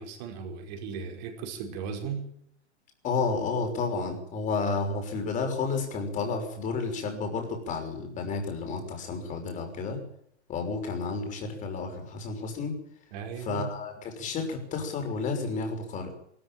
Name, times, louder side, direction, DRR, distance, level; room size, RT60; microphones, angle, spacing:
voice 1, 0.0-2.3 13.1-13.8, right 6 dB, 40° right, 3 dB, 5.4 m, -37 dB
voice 2, 3.0-10.0 10.5-12.8 13.4-16.1, left 4 dB, 20° left, 4 dB, 6.0 m, -31 dB
23.0 x 14.0 x 9.0 m, 0.71 s
figure-of-eight pair, 110°, 35 cm